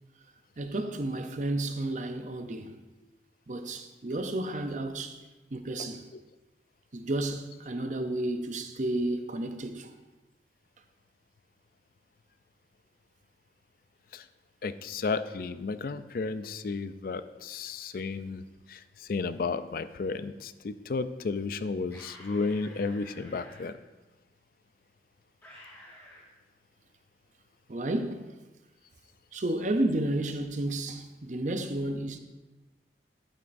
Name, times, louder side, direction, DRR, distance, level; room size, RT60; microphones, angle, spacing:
voice 1, 0.6-2.8 3.5-5.2 5.5-6.0 6.9-9.9 27.7-28.3 29.3-32.2, right 1 dB, 45° right, 0.6 m, -32 dB
voice 2, 14.6-23.8, left 4 dB, 55° left, 0.4 m, -33 dB
sound 1, 21.9-23.6 25.4-26.3, left 1 dB, 15° left, 3.2 m, -51 dB
12.0 x 8.5 x 2.6 m
head